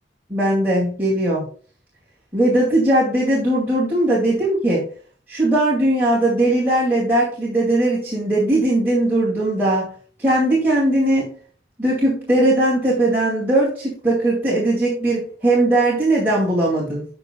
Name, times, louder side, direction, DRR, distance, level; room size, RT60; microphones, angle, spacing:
voice 1, 0.3-1.4 2.3-4.8 5.3-9.9 10.2-11.3 11.8-17.1, right 1 dB, 10° right, -7 dB, 2.4 m, -19 dB
15.0 x 5.4 x 2.3 m, 0.42 s
head